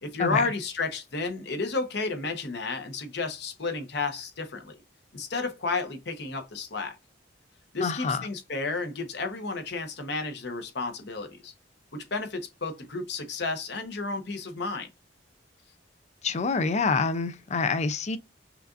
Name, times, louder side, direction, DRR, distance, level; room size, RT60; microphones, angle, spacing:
voice 1, 0.0-4.8 5.1-7.0 7.7-11.5 11.9-14.9, left 3 dB, 65° left, 1.0 m, -32 dB
voice 2, 7.8-8.3 16.2-18.2, left 4 dB, 40° left, 0.4 m, -26 dB
5.7 x 2.4 x 2.5 m
head